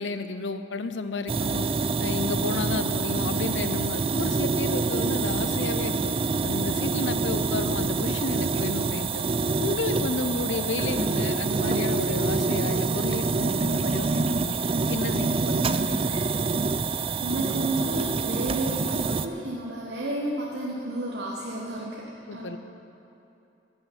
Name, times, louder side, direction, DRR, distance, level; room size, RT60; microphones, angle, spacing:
voice 1, 0.0-1.7 2.0-6.1 6.4-9.2 9.6-14.5 14.9-16.2 22.3-22.6, left 3 dB, 90° left, 10 dB, 0.7 m, -32 dB
sound 1, 1.3-19.3, right 4 dB, 30° right, 0.4 m, -26 dB
voice 2, 17.2-22.6, right 1 dB, 70° right, -3 dB, 1.2 m, -32 dB
13.5 x 6.3 x 9.9 m, 2.9 s
head